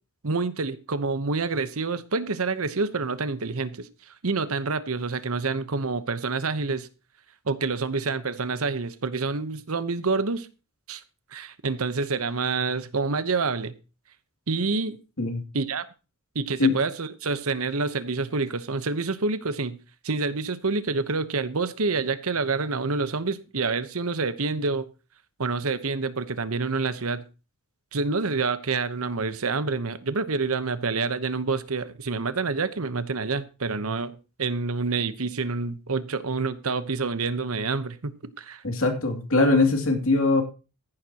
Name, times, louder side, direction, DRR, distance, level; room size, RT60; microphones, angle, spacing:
voice 1, 0.2-3.9 4.2-6.9 7.5-10.5 10.9-11.0 11.3-13.7 14.5-15.0 15.5-15.8 16.3-19.8 20.0-24.9 25.4-27.2 27.9-38.6, right 4 dB, 75° right, 1.0 m, -27 dB
voice 2, 38.6-40.4, left 3 dB, 65° left, 2.7 m, -21 dB
14.5 x 11.0 x 2.9 m
head